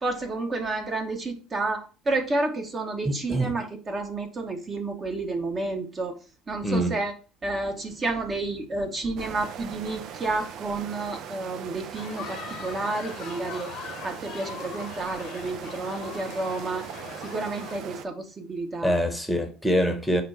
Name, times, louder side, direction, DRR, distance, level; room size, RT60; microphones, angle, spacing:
voice 1, 0.0-6.2 6.5-7.1 7.4-16.9 17.2-18.9, right 2 dB, 30° right, 0.9 m, -30 dB
voice 2, 3.0-3.5 6.6-6.9 18.8-20.2, equal, 5° left, 1.0 m, -24 dB
sound 1, 9.2-18.0, right 8 dB, 60° right, 0.5 m, -40 dB
sound 2, 11.9-17.8, left 8 dB, 55° left, 1.0 m, -41 dB
5.2 x 2.2 x 4.6 m
hypercardioid pair, 75°, 0 cm